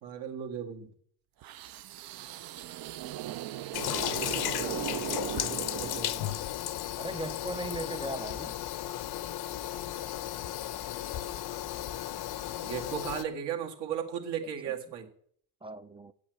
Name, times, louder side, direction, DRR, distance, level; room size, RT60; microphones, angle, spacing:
voice 1, 0.0-0.9 5.3-6.4 12.6-15.1, right 8 dB, 70° right, 2.0 m, -36 dB
sound 1, 1.4-6.5, right 13 dB, 55° right, 0.6 m, -38 dB
Toilet flush, 3.7-13.2, left 12 dB, 60° left, 0.7 m, -35 dB
voice 2, 7.0-8.5 14.6-14.7 15.6-16.1, right 2 dB, 15° right, 0.4 m, -38 dB
8.4 x 8.2 x 7.6 m
cardioid pair, 95°, 43 cm